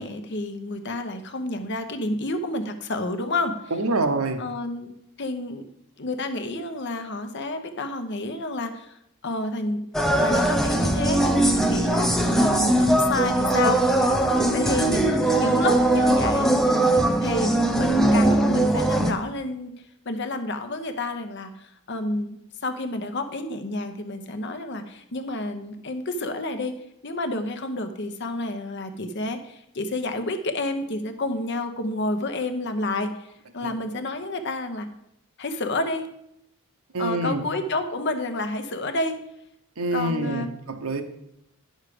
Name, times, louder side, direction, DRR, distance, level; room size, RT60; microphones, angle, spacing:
voice 1, 0.0-3.6 4.4-4.9 5.2-5.6 6.0-9.0 9.2-9.8 10.2-14.2 14.5-16.5 17.2-19.7 20.0-26.8 27.0-33.3 33.5-34.9 35.4-36.1 37.0-39.2 39.9-40.5, left 2 dB, 50° left, 8 dB, 0.9 m, -29 dB
voice 2, 3.7-4.4 36.9-37.4 39.8-41.0, right 2 dB, 75° right, 6 dB, 1.0 m, -26 dB
sound 1, 9.9-19.1, right 1 dB, ahead, 0.6 m, -20 dB
9.8 x 6.5 x 5.0 m, 0.78 s
head